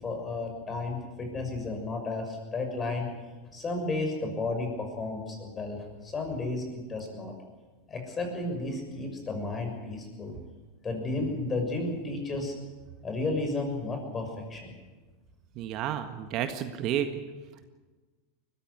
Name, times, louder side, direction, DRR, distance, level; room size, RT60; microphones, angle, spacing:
voice 1, 0.0-3.1 3.5-7.3 7.9-10.4 10.8-12.5 13.0-14.7, left 2 dB, 25° left, 4 dB, 6.5 m, -33 dB
voice 2, 15.5-17.1, right 11 dB, 50° right, 8 dB, 1.7 m, -31 dB
21.0 x 14.5 x 9.8 m, 1.3 s
hypercardioid pair, 110°, 0 cm